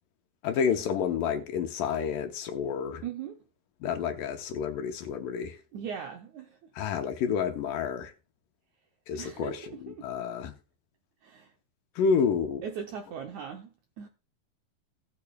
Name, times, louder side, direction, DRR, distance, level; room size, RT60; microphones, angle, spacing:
voice 1, 0.4-3.0 3.8-5.6 6.8-8.1 9.1-10.6 12.0-12.6, left 6 dB, 70° left, 2.4 m, -29 dB
voice 2, 2.9-3.4 5.7-6.7 9.1-10.1 11.2-11.5 12.6-14.1, right 7 dB, 85° right, 1.7 m, -40 dB
16.5 x 8.7 x 2.3 m
omnidirectional pair, 4.4 m